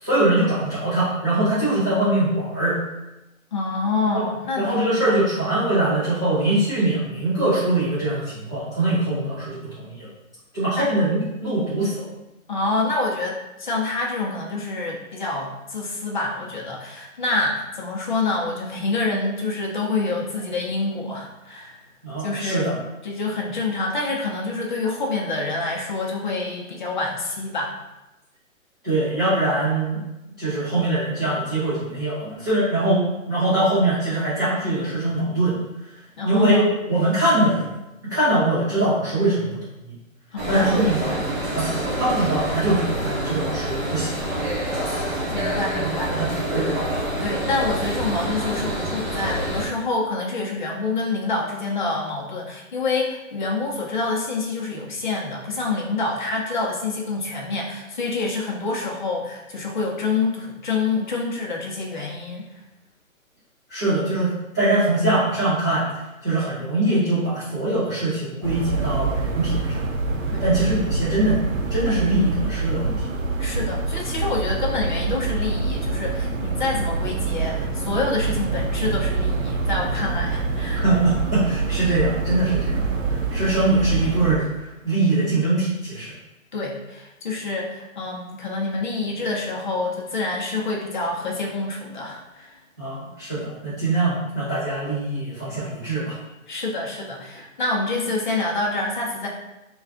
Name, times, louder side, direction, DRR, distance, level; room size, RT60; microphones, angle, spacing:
voice 1, 0.0-2.8 4.1-4.2 4.6-10.1 10.5-12.1 22.0-22.8 28.8-30.0 30.4-35.6 36.2-37.6 38.1-40.0 40.5-41.7 42.0-44.1 45.4-46.7 63.7-65.9 66.2-69.9 70.4-71.4 71.7-73.0 80.7-86.1 92.8-96.1, right 2 dB, 15° right, -14 dB, 0.5 m, -22 dB
voice 2, 3.5-4.7 10.8-10.9 12.5-21.8 22.2-22.7 23.0-27.8 36.2-36.7 40.3-40.8 45.3-46.1 47.2-62.5 70.3-70.7 73.4-80.8 86.5-92.6 96.5-99.3, left 3 dB, 35° left, -2 dB, 0.6 m, -27 dB
sound 1, 40.4-49.7, right 1 dB, 50° right, 1.3 m, -27 dB
sound 2, 68.4-84.4, right 3 dB, 65° right, 0.6 m, -25 dB
3.2 x 2.3 x 3.6 m, 0.96 s
hypercardioid pair, 155°, 41 cm